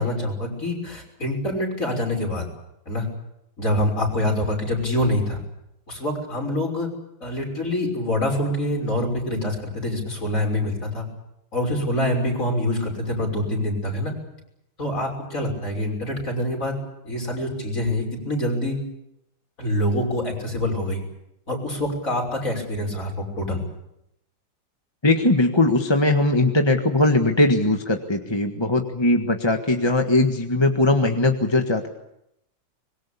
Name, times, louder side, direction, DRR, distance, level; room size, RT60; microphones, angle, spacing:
voice 1, 0.0-2.4 2.9-3.1 3.6-5.4 5.9-6.9 7.2-11.0 11.5-14.1 14.8-16.8 17.0-18.8 19.6-21.0 21.5-23.6, left 1 dB, 40° left, 1 dB, 6.4 m, -25 dB
voice 2, 25.0-31.9, left 2 dB, 15° left, 4 dB, 1.5 m, -20 dB
24.5 x 22.0 x 8.4 m, 0.82 s
omnidirectional pair, 2.1 m